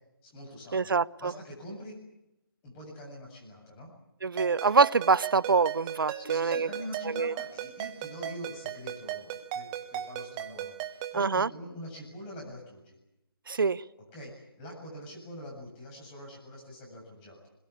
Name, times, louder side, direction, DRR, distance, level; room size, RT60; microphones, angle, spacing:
voice 1, 0.2-0.9 1.2-2.0 2.6-3.9 6.1-13.0 14.1-17.5, equal, 15° left, 7.6 m, -44 dB
voice 2, 0.7-1.0 4.2-6.7 7.1-7.3 11.1-11.5 13.5-13.8, right 5 dB, 65° right, 0.9 m, -25 dB
Ringtone, 4.4-11.2, right 12 dB, 15° right, 1.3 m, -38 dB
24.5 x 22.5 x 8.6 m
figure-of-eight pair, 160°, 12 cm